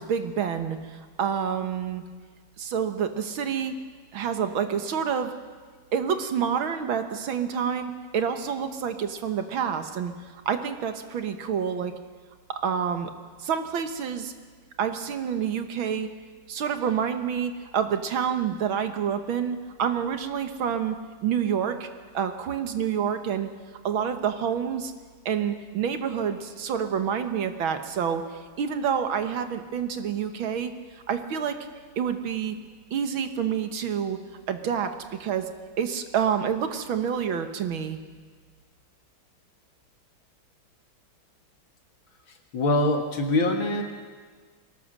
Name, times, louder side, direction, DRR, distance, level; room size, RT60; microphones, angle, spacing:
voice 1, 0.0-2.0 2.6-3.8 4.1-5.3 5.9-11.9 12.6-13.1 13.4-14.3 14.8-16.1 16.5-21.0 21.2-21.9 22.1-23.5 23.8-24.9 25.3-28.2 28.6-31.6 32.0-32.6 32.9-34.2 34.5-35.5 35.8-38.0, right 7 dB, 70° right, 8 dB, 2.0 m, -28 dB
voice 2, 42.5-43.8, left 2 dB, 65° left, 4 dB, 2.7 m, -23 dB
22.5 x 18.5 x 6.6 m, 1.5 s
omnidirectional pair, 2.4 m